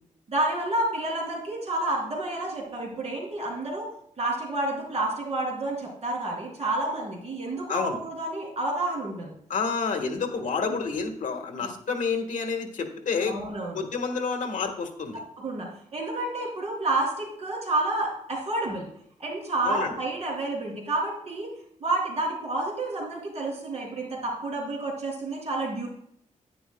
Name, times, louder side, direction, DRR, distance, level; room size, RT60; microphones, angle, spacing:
voice 1, 0.3-3.9 4.2-9.3 11.6-11.7 13.2-13.8 15.4-18.9 19.2-21.5 21.8-25.9, right 2 dB, 50° right, -2 dB, 3.4 m, -29 dB
voice 2, 7.7-8.0 9.5-13.3 13.7-15.2 19.6-20.0, left 5 dB, 75° left, 5 dB, 1.5 m, -29 dB
11.0 x 9.5 x 2.3 m, 0.70 s
wide cardioid pair, 165°, 13 cm